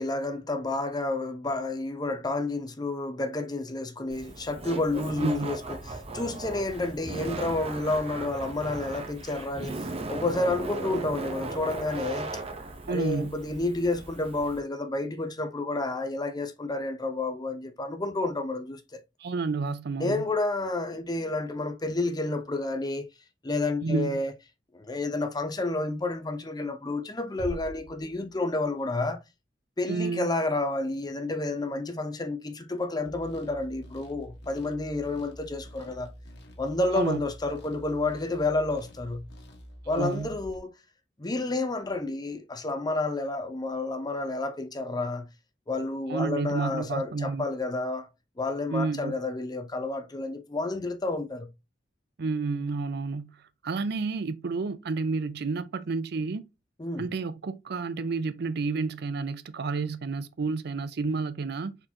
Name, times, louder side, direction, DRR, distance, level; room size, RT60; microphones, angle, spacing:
voice 1, 0.0-9.7 10.1-12.3 12.9-19.0 20.0-23.1 23.4-24.3 24.7-29.2 29.8-36.1 36.6-39.3 39.9-40.7 41.2-45.3 45.7-48.1 48.4-51.5 56.8-57.1, left 2 dB, 25° left, 0.7 m, -30 dB
Laughter, 4.1-14.6, right 2 dB, 35° right, 0.8 m, -37 dB
voice 2, 5.1-5.5 12.9-13.4 19.2-20.3 23.8-24.2 29.9-30.3 36.9-37.2 40.0-40.3 46.1-47.5 48.7-49.1 52.2-53.4 53.6-56.5 57.0-61.8, right 4 dB, 60° right, 0.5 m, -30 dB
sound 1, 27.4-29.0, equal, 50° left, 1.3 m, -42 dB
sound 2, 33.1-40.6, equal, 70° left, 1.4 m, -47 dB
4.3 x 3.8 x 2.8 m
head